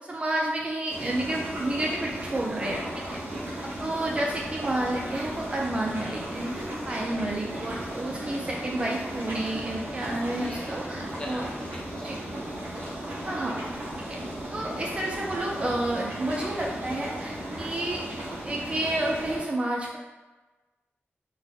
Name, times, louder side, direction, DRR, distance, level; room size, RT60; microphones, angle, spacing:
voice 1, 0.1-3.2 3.6-11.4 12.0-12.2 13.2-13.6 14.0-14.2 14.5-18.0 18.4-20.0, right 1 dB, 25° right, -2 dB, 0.3 m, -30 dB
sound 1, 0.9-19.4, right 1 dB, 50° right, 0.8 m, -35 dB
voice 2, 10.3-10.8 11.0-12.9, left 1 dB, 20° left, -4 dB, 0.6 m, -43 dB
3.8 x 2.1 x 2.6 m, 1.2 s
wide cardioid pair, 165°, 4 cm